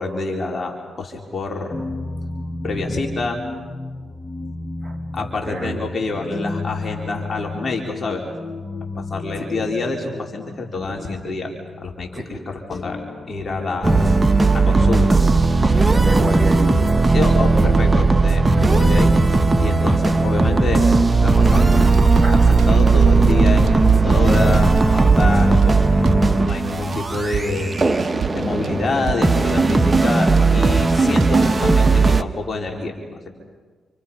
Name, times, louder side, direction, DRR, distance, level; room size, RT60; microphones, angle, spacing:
voice 1, 0.0-1.8 2.6-3.4 5.1-8.2 9.0-13.0 13.3-14.0 14.5-15.2 17.1-19.1 19.6-20.9 21.2-21.7 22.1-27.7 28.3-33.3, left 3 dB, 45° left, 0 dB, 4.3 m, -27 dB
sound 1, 1.7-14.2, left 2 dB, 30° left, 1.8 m, -33 dB
voice 2, 4.8-5.8 9.4-9.5 12.2-12.3 15.6-16.8 18.5-18.7 22.2-22.5, right 1 dB, 10° right, 1 dB, 7.1 m, -29 dB
sound 2, 13.8-32.2, right 3 dB, 25° right, 1.3 m, -16 dB
sound 3, 21.7-32.0, right 8 dB, 60° right, 1.4 m, -31 dB
29.5 x 27.5 x 5.8 m, 1.5 s
supercardioid pair, 50°, 0 cm